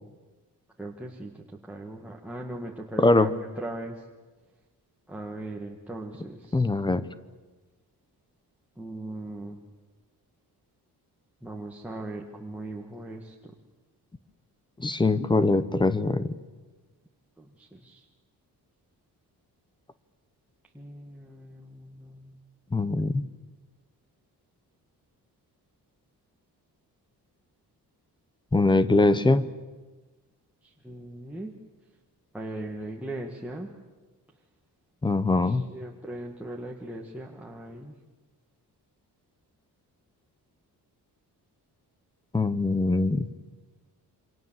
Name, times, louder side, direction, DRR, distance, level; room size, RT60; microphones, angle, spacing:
voice 1, 0.8-1.3 1.6-4.0 5.1-6.7 8.8-9.6 11.4-13.3 17.4-18.0 20.7-22.4 30.6-31.5 32.3-33.7 35.2-37.9, right 1 dB, 5° right, -1 dB, 1.7 m, -39 dB
voice 2, 3.0-3.3 6.5-7.0 14.8-16.3 22.7-23.3 28.5-29.5 35.0-35.6 42.3-43.3, left 2 dB, 10° left, 14 dB, 0.8 m, -22 dB
28.5 x 25.0 x 7.5 m, 1.3 s
wide cardioid pair, 175°, 39 cm